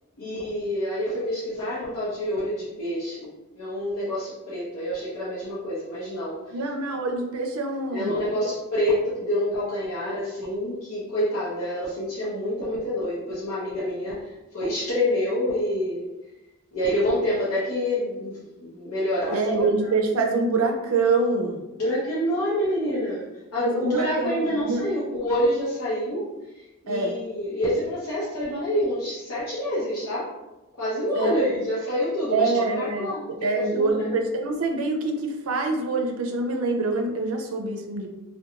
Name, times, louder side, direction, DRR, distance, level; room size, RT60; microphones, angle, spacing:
voice 1, 0.2-6.4 7.9-14.1 14.5-16.0 16.7-19.7 21.8-23.3 23.5-26.3 26.5-30.3 30.8-34.1, left 1 dB, 85° left, -9 dB, 0.7 m, -27 dB
voice 2, 6.5-8.3 19.3-21.6 23.6-24.8 26.9-27.1 31.2-31.3 32.3-38.1, right 3 dB, 75° right, 3 dB, 0.4 m, -25 dB
2.5 x 2.2 x 2.8 m, 1.0 s
head